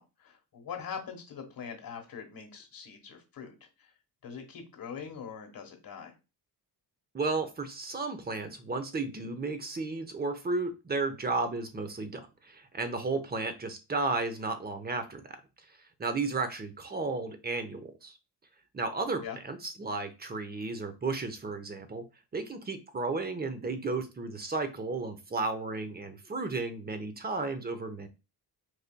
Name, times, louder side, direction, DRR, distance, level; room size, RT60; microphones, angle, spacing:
voice 1, 0.0-3.9 4.2-6.1 19.2-19.4, left 7 dB, 55° left, 3 dB, 1.2 m, -43 dB
voice 2, 7.1-15.4 16.0-18.2 18.7-22.0 22.3-28.1, right 3 dB, 25° right, 8 dB, 0.7 m, -33 dB
4.7 x 2.7 x 2.2 m, 0.28 s
cardioid pair, 85°, 41 cm